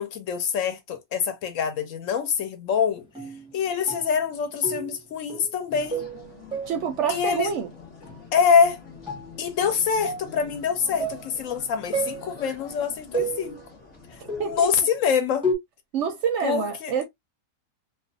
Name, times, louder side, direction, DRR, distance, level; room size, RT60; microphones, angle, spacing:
voice 1, 0.0-3.1 3.5-6.0 7.1-7.5 8.3-8.8 9.4-13.6 14.4-15.4 16.4-16.9, left 6 dB, 70° left, 0.9 m, -25 dB
sound 1, 3.1-3.5 3.9-4.2 4.6-5.0 5.3-5.6 5.9-6.9 8.0-8.2 9.1-9.2 10.0-10.4 11.0-11.3 11.9-12.4 13.1-13.7 14.3-14.7 15.4-15.5, right 2 dB, 5° right, 0.5 m, -31 dB
sound 2, 5.7-14.7, left 5 dB, 35° left, 0.8 m, -46 dB
voice 2, 6.7-7.7 14.2-14.7 15.9-17.0, right 7 dB, 65° right, 0.8 m, -27 dB
2.4 x 2.3 x 2.6 m
omnidirectional pair, 1.5 m